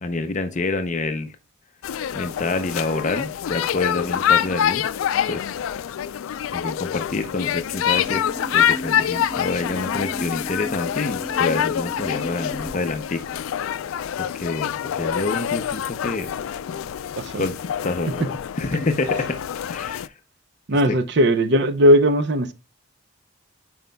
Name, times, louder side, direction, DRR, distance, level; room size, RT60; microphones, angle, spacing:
voice 1, 0.0-1.3 2.1-4.8 5.3-5.5 6.5-8.2 8.5-13.2 14.2-16.3 17.4-17.5 17.8-18.2 18.6-19.4 19.7-20.1 20.9-21.0, left 3 dB, 35° left, 0.5 m, -27 dB
sound 1, 1.8-20.1, left 9 dB, 85° left, 0.3 m, -26 dB
sound 2, 7.7-12.7, equal, 5° right, 1.1 m, -36 dB
voice 2, 17.2-17.5 20.7-22.5, equal, 55° right, 0.6 m, -18 dB
9.2 x 5.1 x 2.2 m
head